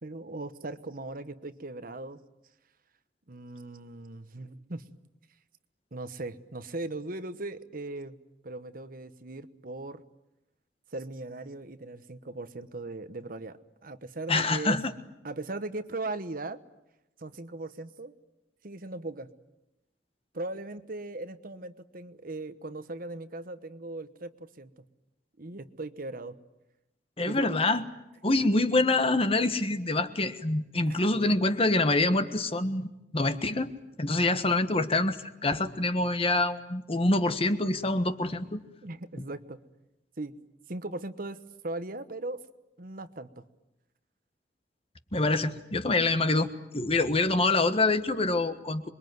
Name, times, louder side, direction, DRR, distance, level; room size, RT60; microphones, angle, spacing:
voice 1, 0.0-2.2 3.3-4.8 5.9-8.2 8.4-10.0 10.9-14.8 15.2-16.6 17.2-18.1 18.6-19.3 20.3-24.7 25.4-26.4 27.2-27.5 30.9-31.0 38.8-39.6 40.2-40.4 40.7-41.4 41.6-42.4 42.8-43.4, right 2 dB, 55° right, 11 dB, 1.2 m, -38 dB
voice 2, 14.3-14.9 27.2-27.8 28.2-32.9 33.1-33.7 34.0-38.6 45.1-48.9, left 2 dB, 35° left, 10 dB, 1.4 m, -26 dB
27.0 x 22.5 x 9.4 m, 0.90 s
head